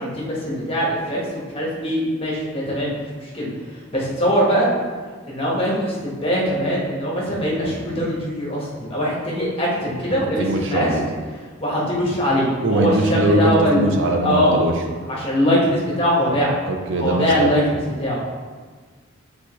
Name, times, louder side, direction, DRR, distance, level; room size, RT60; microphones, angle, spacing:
voice 1, 0.0-3.5 3.9-4.7 5.3-10.9 11.6-13.8 14.2-14.6 15.1-16.5 17.0-18.2, equal, 25° left, -5 dB, 1.5 m, -22 dB
voice 2, 10.4-11.1 12.6-14.7 16.7-17.5, right 2 dB, 65° right, 2 dB, 0.7 m, -21 dB
8.3 x 4.1 x 3.2 m, 1.5 s
head